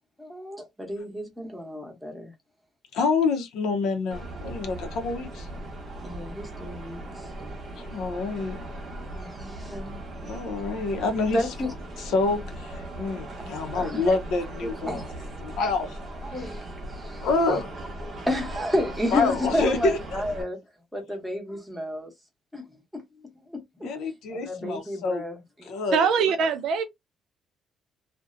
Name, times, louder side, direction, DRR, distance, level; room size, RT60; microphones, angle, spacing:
voice 1, 0.2-2.3 6.0-7.0 9.1-10.0 11.3-11.7 13.4-14.2 14.6-15.1 16.2-17.6 18.3-20.6 20.9-22.1 22.5-22.6 22.9-24.0 24.3-25.4, left 1 dB, ahead, 0.9 m, -31 dB
voice 2, 2.9-5.5 7.7-8.7 10.3-11.5 12.0-15.0 15.4-16.0 16.3-16.4 17.2-17.7 19.1-20.2 23.8-25.2 25.6-26.1, left 3 dB, 80° left, 0.6 m, -27 dB
sound 1, 4.1-20.4, right 1 dB, 40° right, 0.8 m, -38 dB
voice 3, 25.9-26.8, right 6 dB, 70° right, 0.4 m, -22 dB
2.6 x 2.1 x 2.5 m
cardioid pair, 145°, 0 cm